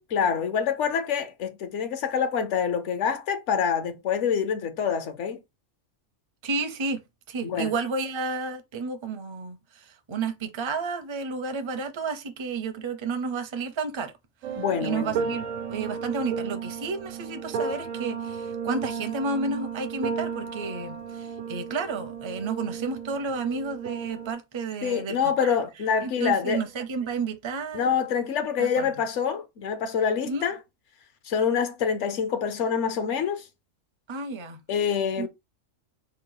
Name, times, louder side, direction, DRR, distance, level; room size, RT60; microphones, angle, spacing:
voice 1, 0.0-5.4 7.4-7.7 14.6-15.2 24.8-26.6 27.7-30.6 31.3-33.4 34.7-35.3, left 7 dB, 65° left, 1.0 m, -26 dB
voice 2, 6.4-7.0 7.3-14.1 14.8-25.6 26.0-27.9 28.6-28.9 30.3-30.5 34.1-34.6 35.2-35.3, right 4 dB, 35° right, 0.5 m, -31 dB
sound 1, 14.4-24.3, right 6 dB, 90° right, 1.1 m, -34 dB
4.4 x 2.3 x 4.7 m
omnidirectional pair, 1.4 m